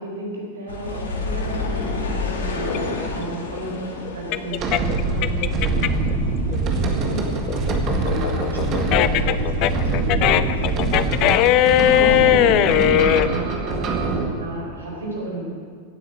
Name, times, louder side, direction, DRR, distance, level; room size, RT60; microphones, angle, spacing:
voice 1, 0.0-5.9 7.1-7.2 11.8-13.0 13.2-15.5, right 1 dB, 70° right, -2 dB, 4.2 m, -32 dB
sound 1, 0.7-11.9 12.1-13.2 13.7-13.8, left 3 dB, 65° left, 1.9 m, -32 dB
sound 2, 2.7-6.1 6.5-13.3, left 13 dB, 40° left, 0.5 m, -19 dB
sound 3, 4.6-14.3, right 3 dB, 35° right, 1.8 m, -24 dB
voice 2, 7.6-10.9, equal, 85° right, -4 dB, 2.8 m, -31 dB
16.0 x 9.2 x 7.6 m, 2.1 s
figure-of-eight pair, 90°, 0 cm